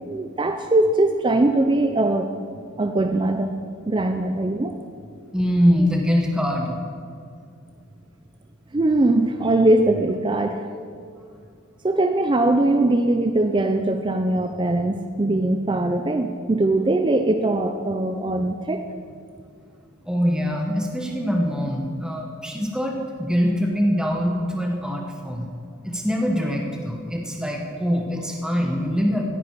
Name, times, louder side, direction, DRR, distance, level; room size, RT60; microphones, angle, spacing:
voice 1, 0.1-2.3 2.8-3.5 3.9-4.7 8.7-10.7 11.8-18.8, right 2 dB, 20° right, 6 dB, 0.4 m, -21 dB
voice 2, 5.3-6.8 20.1-25.5 25.8-29.2, equal, 5° right, 0 dB, 1.1 m, -23 dB
16.0 x 10.0 x 4.6 m, 2.3 s
head